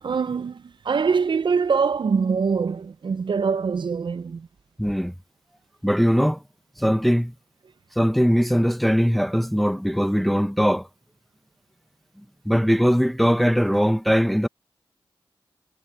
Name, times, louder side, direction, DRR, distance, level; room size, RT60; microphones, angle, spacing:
voice 1, 0.0-4.5, right 5 dB, 60° right, 0.6 m, -24 dB
voice 2, 4.8-5.1 5.8-6.4 6.8-7.3 8.0-10.9 12.4-14.5, equal, ahead, 1.0 m, -20 dB
cardioid pair, 60°, 9 cm